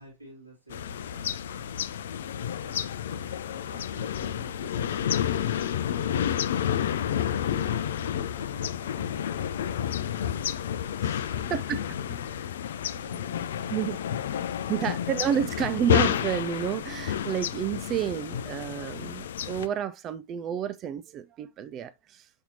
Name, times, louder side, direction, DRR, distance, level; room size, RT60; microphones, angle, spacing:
voice 1, 0.0-1.8 2.3-10.5 10.8-15.1, right 2 dB, 90° right, 3.3 m, -53 dB
sound 1, 0.7-19.7, left 9 dB, 60° left, 0.5 m, -30 dB
voice 2, 12.9-13.2 13.7-14.0 14.7-22.3, right 9 dB, 30° right, 0.4 m, -30 dB
7.2 x 5.3 x 2.8 m
figure-of-eight pair, 90°, 0 cm